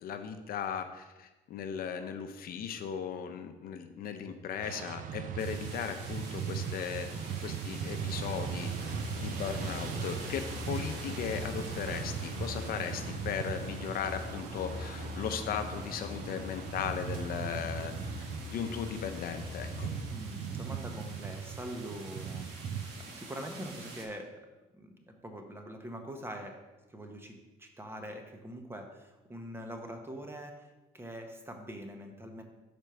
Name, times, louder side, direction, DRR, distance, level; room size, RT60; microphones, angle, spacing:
voice 1, 0.0-7.2 7.4-8.9 9.2-17.9 18.5-19.9, left 7 dB, 60° left, 7 dB, 0.6 m, -37 dB
sound 1, 4.6-22.9, right 7 dB, 55° right, 0.4 m, -39 dB
sound 2, 5.4-24.1, right 3 dB, 75° right, 1.2 m, -48 dB
sound 3, 7.9-20.1, left 3 dB, 45° left, 0.9 m, -43 dB
voice 2, 20.1-24.4 24.7-26.6 26.9-30.7 30.9-32.4, right 1 dB, 15° right, 4 dB, 0.9 m, -43 dB
5.1 x 4.5 x 5.6 m, 1.1 s
cardioid pair, 110°, 17 cm